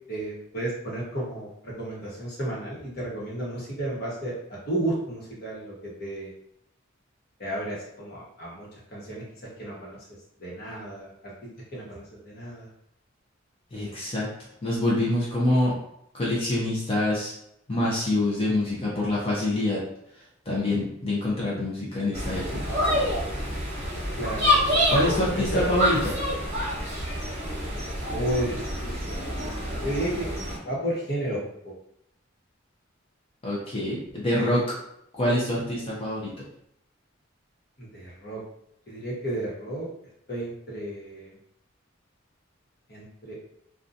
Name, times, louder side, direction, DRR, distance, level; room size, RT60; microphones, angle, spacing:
voice 1, 0.1-4.3 4.7-6.3 7.4-9.2 9.6-10.0 10.4-11.3 11.7-12.7 24.1-24.5 25.3-25.8 28.1-29.1 29.8-30.4 30.6-31.7 37.8-38.4 38.9-39.9 40.3-41.4 42.9-43.4, right 1 dB, 50° left, -6 dB, 1.0 m, -32 dB
voice 2, 13.7-14.3 14.6-15.7 16.1-17.4 17.7-19.8 20.5-22.6 24.9-26.1 33.4-34.8 35.1-36.4, left 1 dB, 30° left, -6 dB, 0.5 m, -26 dB
sound 1, 22.1-30.6, left 1 dB, 40° right, 1.0 m, -27 dB
2.6 x 2.2 x 2.5 m, 0.75 s
head